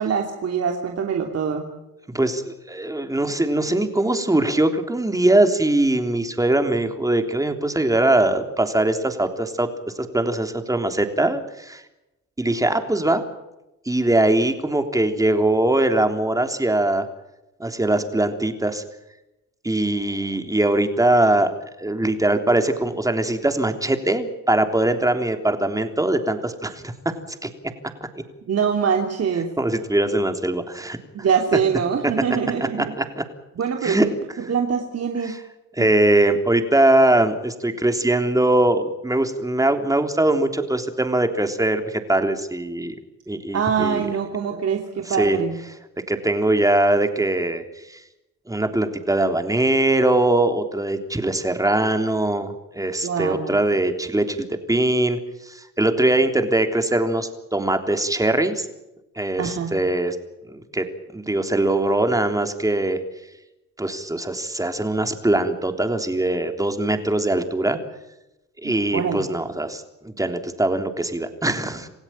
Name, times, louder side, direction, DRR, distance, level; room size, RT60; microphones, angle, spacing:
voice 1, 0.0-1.6 28.5-29.5 31.1-32.9 33.6-34.1 34.4-35.4 35.8-35.9 43.5-45.6 53.0-53.6 59.4-59.7 68.6-69.2, right 7 dB, 55° right, 3 dB, 3.0 m, -24 dB
voice 2, 2.1-9.7 10.0-11.8 12.4-13.2 13.8-17.1 17.6-18.8 19.6-21.5 21.8-26.8 27.3-27.5 29.6-31.0 32.8-33.2 33.8-34.1 35.2-35.4 35.8-42.9 43.3-44.1 44.5-44.6 45.1-45.4 46.1-47.6 47.9-48.0 48.5-58.7 59.1-60.1 60.5-60.8 61.1-63.0 63.8-67.8 68.6-71.9, right 1 dB, 10° right, 6 dB, 3.4 m, -21 dB
27.5 x 16.0 x 8.9 m, 0.95 s
cardioid pair, 90°, 30 cm